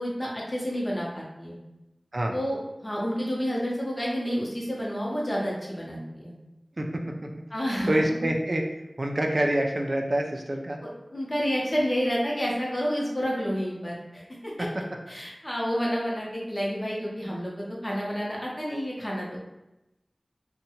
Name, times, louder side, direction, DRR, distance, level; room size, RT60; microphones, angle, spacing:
voice 1, 0.0-1.6 2.3-6.3 7.5-8.3 11.1-14.7 15.1-19.4, equal, 35° left, -4 dB, 0.8 m, -29 dB
voice 2, 6.8-7.3 7.9-8.6 9.0-10.8, right 1 dB, 50° right, 1 dB, 0.3 m, -26 dB
2.7 x 2.2 x 2.8 m, 0.96 s
wide cardioid pair, 45°, 0 cm